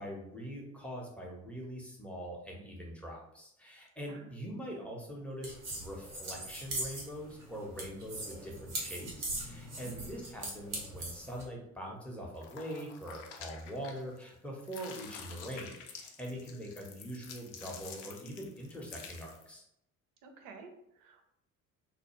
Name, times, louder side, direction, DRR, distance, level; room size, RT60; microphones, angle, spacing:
voice 1, 0.0-19.6, equal, 5° left, -2 dB, 0.7 m, -43 dB
sound 1, 5.4-11.4, right 2 dB, 85° right, 0.7 m, -41 dB
sound 2, 12.3-14.3 14.6-19.5, left 6 dB, 60° left, 0.5 m, -49 dB
voice 2, 20.2-21.3, right 4 dB, 50° right, 5 dB, 0.6 m, -52 dB
2.3 x 2.0 x 2.9 m, 0.78 s
figure-of-eight pair, 55°, 43 cm